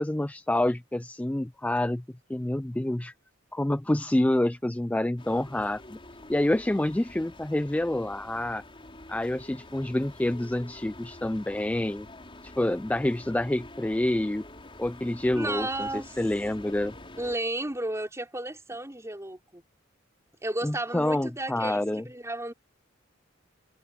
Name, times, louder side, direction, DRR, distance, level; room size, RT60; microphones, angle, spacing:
voice 1, 0.0-2.0 2.3-3.1 3.5-6.0 6.3-8.6 9.1-12.1 12.4-14.5 14.8-15.9 16.2-16.9 20.6-22.0, left 1 dB, 5° left, 0.3 m, -27 dB
sound 1, 5.2-17.4, left 2 dB, 25° left, 5.1 m, -47 dB
voice 2, 15.3-16.1 17.2-19.6 20.4-22.5, right 1 dB, 15° right, 5.0 m, -33 dB
head